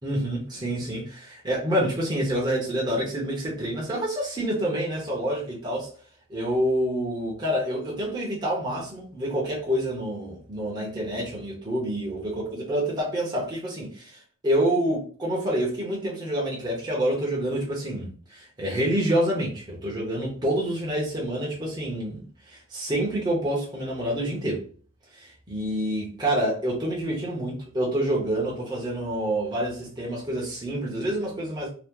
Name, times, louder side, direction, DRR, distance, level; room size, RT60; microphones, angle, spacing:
voice 1, 0.0-5.9 6.3-24.6 25.1-31.7, right 1 dB, 20° right, 0.9 m, -27 dB
2.9 x 2.2 x 3.6 m
head